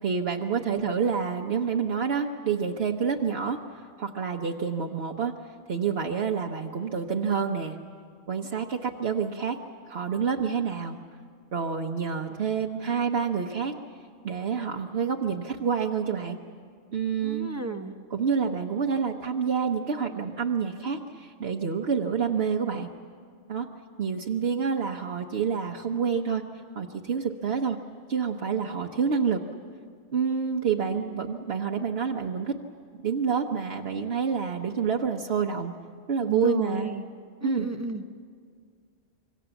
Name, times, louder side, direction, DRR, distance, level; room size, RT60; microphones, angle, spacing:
voice 1, 0.0-5.3 5.7-7.8 8.3-9.6 9.9-11.0 11.5-13.7 14.2-16.4 16.9-17.5 18.1-22.9 23.5-23.7 24.0-26.4 26.8-27.8 28.1-29.4 30.1-32.6 33.0-35.7 36.1-36.9 37.4-37.7, right 6 dB, 65° right, 1 dB, 1.2 m, -28 dB
voice 2, 17.2-18.0 36.2-37.0 37.4-38.0, right 2 dB, 15° right, 6 dB, 1.0 m, -33 dB
26.0 x 24.0 x 7.1 m, 2.1 s
omnidirectional pair, 1.1 m